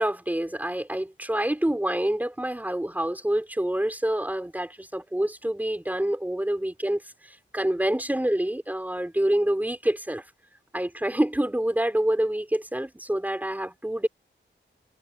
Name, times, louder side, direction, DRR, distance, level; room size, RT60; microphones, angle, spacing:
voice 1, 0.0-10.2 10.7-14.1, right 1 dB, 10° right, 3.9 m, -27 dB
wide cardioid pair, 110°, 20 cm